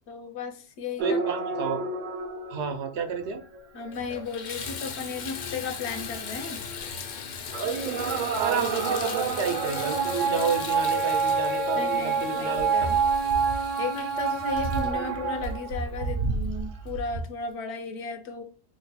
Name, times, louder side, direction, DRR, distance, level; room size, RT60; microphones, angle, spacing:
voice 1, 0.1-1.2 3.7-6.6 11.8-13.0 13.8-18.4, left 4 dB, 75° left, 5 dB, 0.9 m, -35 dB
sound 1, 1.0-3.6 6.7-6.8 7.5-17.2, right 5 dB, 55° right, 0.6 m, -28 dB
voice 2, 1.0-1.8 2.5-3.4 8.4-12.9, right 5 dB, 85° right, 5 dB, 1.0 m, -30 dB
Water tap faucet / Bathtub (filling or washing), 3.2-3.3 3.8-16.2 16.9-17.0 17.5-17.6, left 6 dB, 55° left, 0.5 m, -38 dB
3.1 x 2.2 x 4.0 m, 0.35 s
omnidirectional pair, 1.1 m